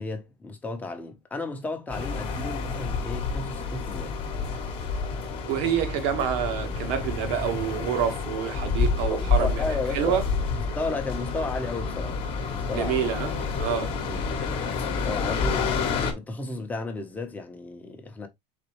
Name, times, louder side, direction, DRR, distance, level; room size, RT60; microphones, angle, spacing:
voice 1, 0.0-4.2 9.1-10.2 10.7-12.2 12.5-13.0 14.0-15.9 16.1-18.3, left 3 dB, 10° left, 0.8 m, -34 dB
sound 1, 1.9-16.1, left 4 dB, 40° left, 1.1 m, -29 dB
voice 2, 5.5-9.6 9.9-10.2 12.7-13.3 13.6-13.9, right 8 dB, 65° right, 1.2 m, -27 dB
4.1 x 3.9 x 3.1 m
cardioid pair, 160°, 15 cm